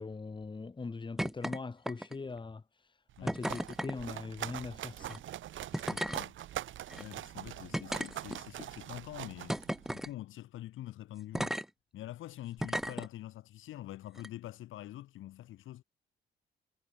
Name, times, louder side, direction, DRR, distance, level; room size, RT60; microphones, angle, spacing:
voice 1, 0.0-2.6 3.2-5.2, left 4 dB, 25° left, 2.0 m, -41 dB
sound 1, 1.2-1.6 1.8-2.3 3.3-4.0 5.0-5.2 5.7-6.2 6.9-7.0 7.7-8.6 9.5-10.1 11.3-11.6 12.6-13.1 14.1-14.3, equal, ahead, 1.1 m, -35 dB
sound 2, 3.1-10.1, right 13 dB, 75° right, 2.4 m, -43 dB
voice 2, 5.9-6.4 6.9-9.6 9.9-11.6 11.9-15.8, left 14 dB, 85° left, 7.3 m, -45 dB
cardioid pair, 90°, 20 cm